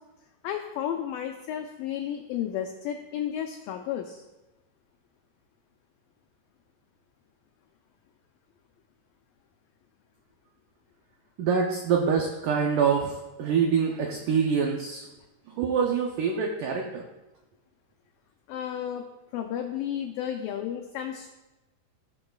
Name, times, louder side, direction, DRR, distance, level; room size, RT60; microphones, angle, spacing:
voice 1, 0.4-4.2 18.5-19.0 19.3-21.3, left 10 dB, 90° left, 4 dB, 2.0 m, -32 dB
voice 2, 11.4-13.1 13.4-15.0 15.6-17.0, right 6 dB, 85° right, 1 dB, 1.8 m, -25 dB
17.5 x 6.2 x 2.4 m, 1.0 s
omnidirectional pair, 4.7 m